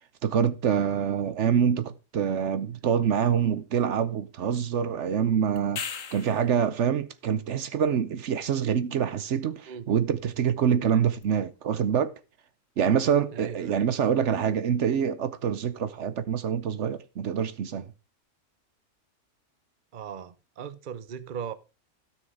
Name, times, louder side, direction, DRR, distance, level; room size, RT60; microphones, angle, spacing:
voice 1, 0.2-12.1 12.8-17.9, right 8 dB, 70° right, 1.0 m, -26 dB
sound 1, 5.6-6.5 11.2-11.3, left 7 dB, 85° left, 1.5 m, -36 dB
voice 2, 13.3-13.8 19.9-21.5, right 7 dB, 45° right, 0.9 m, -38 dB
13.0 x 6.3 x 4.8 m
omnidirectional pair, 1.3 m